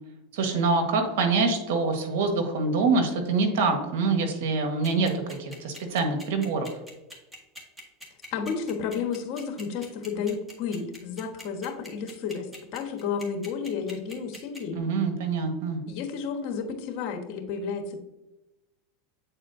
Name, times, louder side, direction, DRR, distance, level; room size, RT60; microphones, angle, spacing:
voice 1, 0.3-6.7 14.7-15.8, right 4 dB, 70° right, 5 dB, 1.5 m, -25 dB
sound 1, 4.8-14.6, left 1 dB, ahead, 1.7 m, -43 dB
voice 2, 8.3-14.8 15.9-18.0, left 6 dB, 55° left, 5 dB, 1.3 m, -32 dB
8.4 x 4.2 x 2.7 m, 0.98 s
hypercardioid pair, 105°, 0 cm